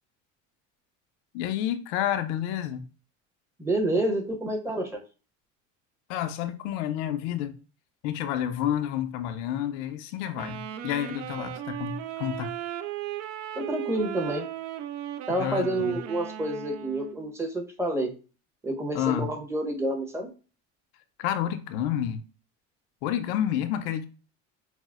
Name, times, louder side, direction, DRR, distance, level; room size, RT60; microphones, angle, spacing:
voice 1, 1.3-2.8 6.1-7.6 8.0-12.5 15.4-16.0 18.9-19.3 21.2-22.2 23.0-24.0, left 11 dB, 80° left, 0.5 m, -29 dB
voice 2, 3.6-5.0 13.5-14.4 15.3-18.1 18.6-20.3, right 1 dB, 10° right, 0.8 m, -28 dB
Wind instrument woodwind instrument, 10.3-17.3, right 12 dB, 55° right, 0.4 m, -37 dB
5.9 x 2.1 x 2.3 m
cardioid pair, 120°, 33 cm